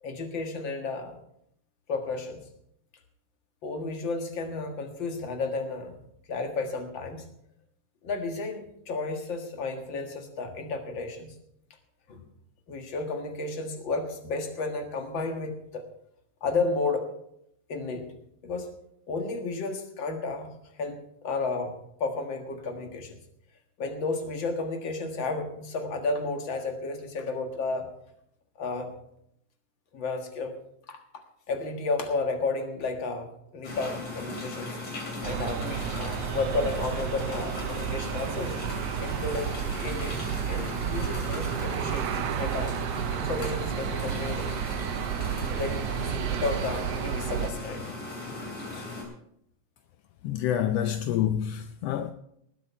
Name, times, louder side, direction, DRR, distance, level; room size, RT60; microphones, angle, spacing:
voice 1, 0.0-1.2 1.9-2.4 3.6-6.0 6.3-7.3 8.0-11.4 12.1-12.3 12.7-15.8 16.4-17.1 17.7-18.1 18.4-18.7 19.1-21.7 22.0-23.2 23.8-27.9 28.6-28.9 29.9-30.5 30.9-34.8 35.2-38.6 39.0-39.6 39.8-42.8 43.1-44.5 45.5-47.9 48.7-48.9 50.8-50.9, left 3 dB, 45° left, 2.1 m, -32 dB
sound 1, 33.6-49.0, left 2 dB, 60° left, 4.5 m, -37 dB
Aircraft, 35.2-47.5, right 10 dB, 75° right, 1.5 m, -32 dB
voice 2, 50.2-52.1, left 10 dB, 75° left, 1.5 m, -27 dB
19.5 x 8.5 x 4.6 m
omnidirectional pair, 3.4 m